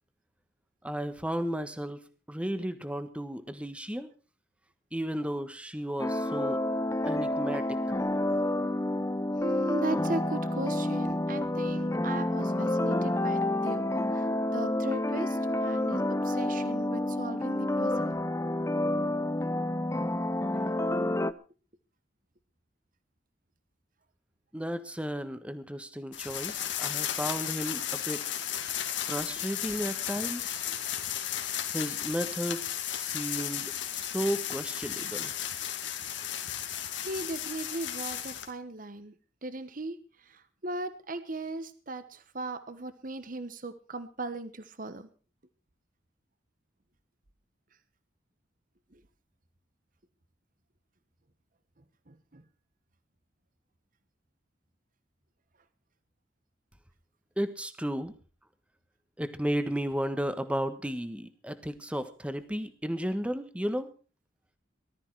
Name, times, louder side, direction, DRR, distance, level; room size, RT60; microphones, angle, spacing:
voice 1, 0.8-2.0 2.3-4.1 4.9-6.6 7.0-7.8 24.5-28.3 29.0-30.6 31.7-35.3 57.4-58.1 59.2-63.9, equal, 5° right, 10 dB, 1.4 m, -34 dB
sound 1, 6.0-21.3, left 1 dB, 15° left, 0.7 m, -29 dB
voice 2, 9.4-13.8 14.1-14.3 14.5-18.1 20.5-20.6 37.0-39.1 39.4-45.1 48.9-49.0 52.1-52.4, right 2 dB, 45° right, 12 dB, 1.2 m, -38 dB
sound 2, 26.1-38.5, left 10 dB, 80° left, 2.5 m, -34 dB
19.0 x 13.0 x 4.8 m, 0.36 s
head